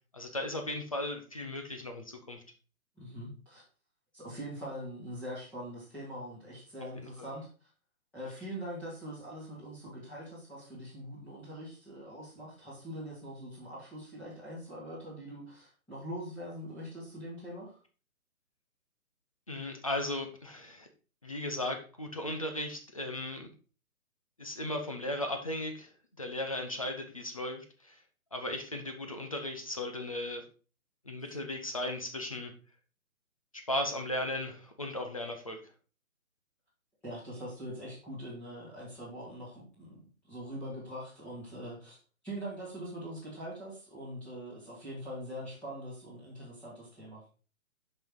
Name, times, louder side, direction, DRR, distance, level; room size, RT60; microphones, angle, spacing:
voice 1, 0.1-2.4 7.2-7.3 19.5-20.9 21.2-23.5 24.4-25.9 26.2-28.0 28.3-30.4 31.0-32.5 33.5-35.6, left 1 dB, 25° left, 5 dB, 0.6 m, -36 dB
voice 2, 3.0-3.6 4.1-7.7 8.1-17.8 37.0-40.0 40.3-42.0 42.2-47.2, equal, 5° left, -8 dB, 1.6 m, -43 dB
5.6 x 5.4 x 4.6 m, 0.37 s
hypercardioid pair, 175°, 42 cm